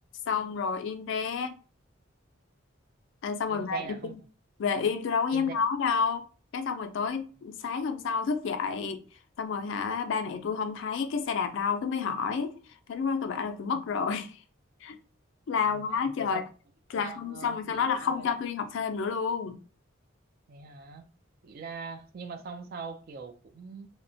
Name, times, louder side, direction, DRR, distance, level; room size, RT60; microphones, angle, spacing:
voice 1, 0.3-1.6 3.2-3.9 4.6-6.2 6.5-9.0 9.4-12.6 12.9-14.4 14.8-15.0 15.5-16.4 16.9-19.6, left 5 dB, 60° left, 0.3 m, -30 dB
voice 2, 3.5-4.1 5.3-5.5 13.7-13.8 15.6-16.5 16.9-18.3 20.5-21.1 21.4-23.9, right 5 dB, 45° right, 0.3 m, -42 dB
2.7 x 2.0 x 2.6 m
head